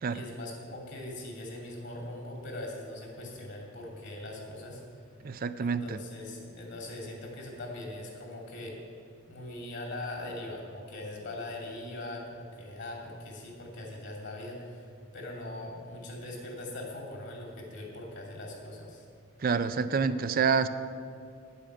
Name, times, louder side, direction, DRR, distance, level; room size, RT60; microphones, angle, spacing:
voice 1, 0.1-4.8 5.6-8.8 9.3-19.1, left 1 dB, 60° left, 0 dB, 2.8 m, -41 dB
voice 2, 5.2-6.0 19.4-20.7, right 5 dB, 45° right, 12 dB, 0.4 m, -27 dB
10.0 x 8.4 x 7.8 m, 2.3 s
head